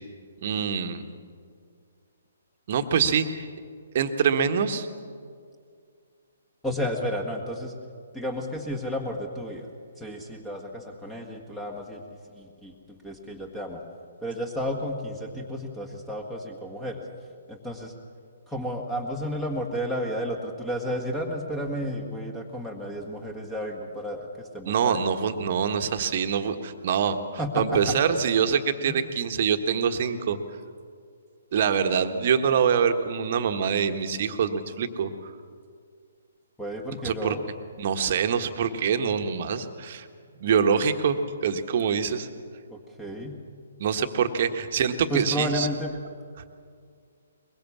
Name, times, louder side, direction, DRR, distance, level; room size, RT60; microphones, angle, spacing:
voice 1, 0.4-1.0 2.7-3.5 3.9-4.9 24.7-27.2 27.5-30.4 31.5-35.1 37.0-37.4 37.8-40.1 40.4-41.2 41.4-42.3 43.8-45.7, right 7 dB, 45° right, 7 dB, 1.4 m, -25 dB
voice 2, 6.6-7.7 8.1-9.7 10.0-12.0 12.3-12.7 13.0-13.8 14.2-17.0 17.5-17.9 18.5-25.0 27.4-27.9 28.8-29.0 36.6-37.4 42.7-43.4 45.1-45.9, equal, 5° left, 1 dB, 1.8 m, -32 dB
22.5 x 22.5 x 7.3 m, 2.2 s
figure-of-eight pair, 130°, 0 cm